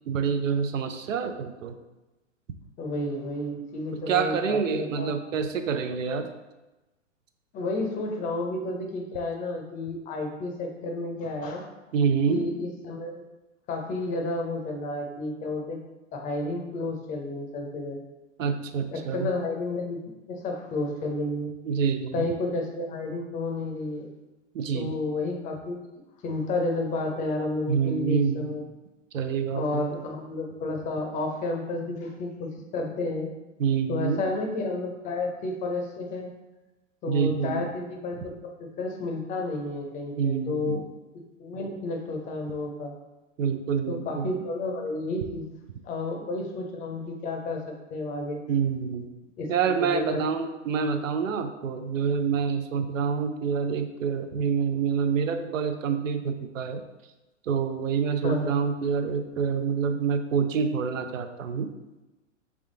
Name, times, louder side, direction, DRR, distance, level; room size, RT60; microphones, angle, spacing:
voice 1, 0.1-1.8 4.1-6.3 11.9-12.4 18.4-19.3 21.6-22.2 24.5-24.9 27.7-28.6 29.1-29.9 33.6-34.2 37.1-37.7 40.2-40.9 43.4-44.3 48.5-49.1 49.5-56.8 57.4-61.7, right 6 dB, 85° right, 7 dB, 0.6 m, -27 dB
voice 2, 2.8-5.1 7.5-11.7 12.3-13.2 13.7-15.8 16.1-18.0 18.9-20.0 20.3-21.5 22.1-24.1 24.7-25.8 26.2-28.6 29.5-33.3 33.9-36.3 37.0-40.8 41.4-42.9 43.9-45.5 45.8-47.6 47.9-48.4 49.4-50.2 58.2-58.5, left 2 dB, 20° left, 2 dB, 0.6 m, -31 dB
3.6 x 3.4 x 3.7 m, 1.1 s
hypercardioid pair, 120°, 38 cm